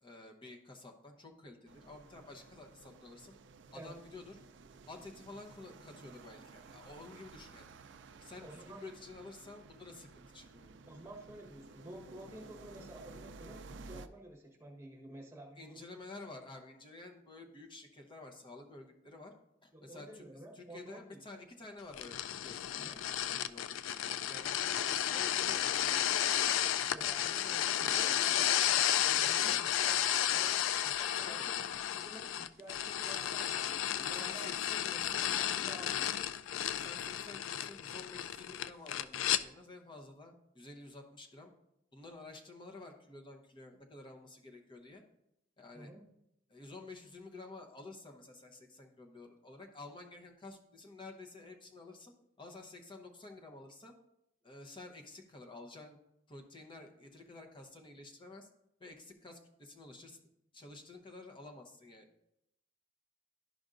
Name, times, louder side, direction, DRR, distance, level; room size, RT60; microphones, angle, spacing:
voice 1, 0.0-3.3 3.7-4.4 4.9-7.7 8.2-10.7 15.6-19.3 19.6-26.0 31.2-31.5 34.0-35.3 36.7-41.5 41.9-45.0 45.6-45.9 46.5-52.1 52.4-53.9 54.4-56.0 56.3-58.5 58.8-60.2 60.5-62.1, left 2 dB, 25° left, 2 dB, 0.8 m, -51 dB
sound 1, 1.7-14.1, right 4 dB, 60° right, 0.4 m, -54 dB
voice 2, 8.4-8.8 10.9-15.8 19.7-21.2 22.8-23.0 26.9-31.6 31.8-34.4 34.9-36.2 45.7-46.0, right 1 dB, 15° right, -1 dB, 1.2 m, -51 dB
sound 2, 21.9-39.4, left 11 dB, 80° left, 0.3 m, -33 dB
11.5 x 5.1 x 2.5 m, 0.82 s
head